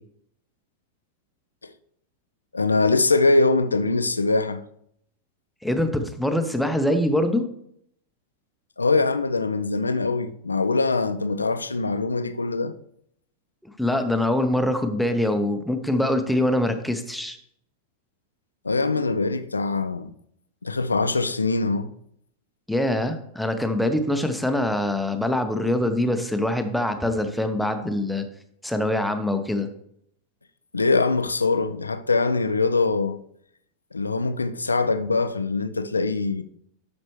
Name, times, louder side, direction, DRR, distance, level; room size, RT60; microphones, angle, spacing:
voice 1, 2.5-4.6 8.8-12.7 18.6-20.1 20.6-21.9 30.7-33.2 33.9-36.4, left 3 dB, 80° left, 0.5 m, -23 dB
voice 2, 5.6-7.5 13.6-17.4 22.7-28.3 28.6-29.7, left 1 dB, ahead, 0.9 m, -24 dB
12.0 x 5.2 x 3.1 m
figure-of-eight pair, 90°, 0 cm